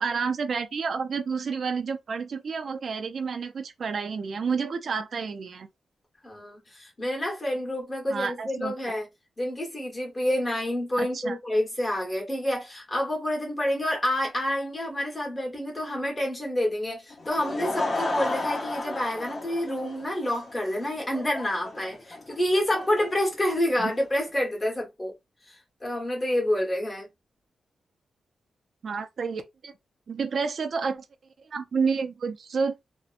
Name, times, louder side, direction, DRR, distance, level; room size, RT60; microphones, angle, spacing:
voice 1, 0.0-5.7 8.1-8.7 11.0-11.4 23.8-23.9 28.8-29.7 30.1-31.0 31.4-32.8, right 5 dB, 55° right, 0.3 m, -30 dB
voice 2, 6.2-9.1 9.4-25.1 25.4-27.1, left 1 dB, 20° left, 1.1 m, -28 dB
Laughter / Crowd, 17.1-24.0, left 2 dB, 45° left, 0.8 m, -34 dB
2.7 x 2.0 x 2.4 m
wide cardioid pair, 135°, 0 cm